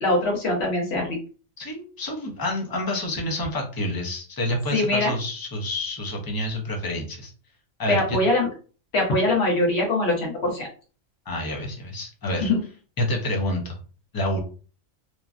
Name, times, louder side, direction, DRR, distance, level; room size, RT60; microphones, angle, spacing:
voice 1, 0.0-1.2 4.7-5.1 7.9-8.5 8.9-10.7 12.4-12.6, left 2 dB, 55° left, -1 dB, 1.3 m, -22 dB
voice 2, 1.6-7.3 7.8-8.2 11.3-12.5 13.0-13.8 14.1-14.4, left 1 dB, 30° left, 1 dB, 0.4 m, -28 dB
3.1 x 2.2 x 2.4 m, 0.38 s
omnidirectional pair, 1.3 m